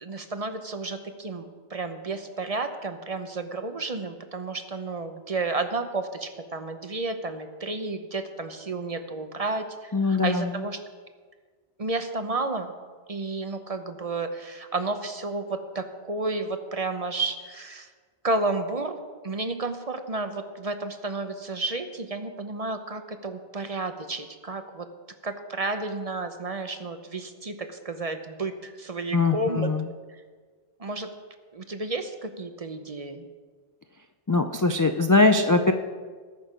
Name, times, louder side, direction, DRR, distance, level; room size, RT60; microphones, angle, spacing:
voice 1, 0.0-10.8 11.8-12.7 13.1-17.9 18.2-19.0 19.2-24.9 25.2-29.7 30.8-31.1 31.5-33.2, right 3 dB, 40° right, 8 dB, 0.8 m, -31 dB
voice 2, 9.9-10.6 29.1-29.9 34.3-35.7, left 3 dB, 30° left, 6 dB, 0.3 m, -21 dB
19.5 x 6.5 x 5.1 m, 1.6 s
omnidirectional pair, 1.1 m